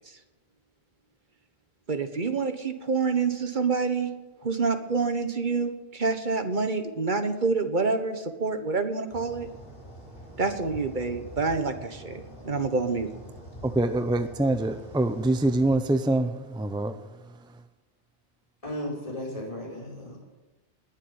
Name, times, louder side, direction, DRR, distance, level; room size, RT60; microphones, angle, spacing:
voice 1, 1.9-4.1 4.4-9.5 10.4-13.1, right 4 dB, 45° right, 8 dB, 1.4 m, -27 dB
sound 1, 9.1-15.8, equal, 60° left, 7.1 m, -45 dB
voice 2, 13.6-17.6, right 2 dB, 5° right, 9 dB, 0.7 m, -25 dB
voice 3, 18.6-20.2, left 1 dB, 30° left, -2 dB, 5.3 m, -35 dB
20.0 x 7.4 x 8.7 m, 1.2 s
omnidirectional pair, 1.1 m